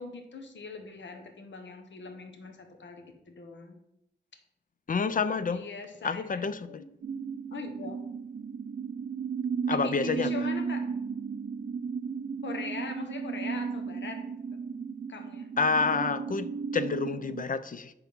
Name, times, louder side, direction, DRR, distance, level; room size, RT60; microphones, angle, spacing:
voice 1, 0.0-3.8 5.5-6.8 7.5-8.0 9.7-10.9 12.4-14.2 15.1-15.5, left 4 dB, 85° left, 5 dB, 1.1 m, -41 dB
voice 2, 4.9-5.7 6.0-6.8 9.7-10.3 15.6-17.9, left 4 dB, 50° left, 13 dB, 0.5 m, -29 dB
sound 1, 7.0-17.4, right 5 dB, 45° right, 0.4 m, -34 dB
8.9 x 3.6 x 5.4 m, 0.81 s
wide cardioid pair, 85°, 18 cm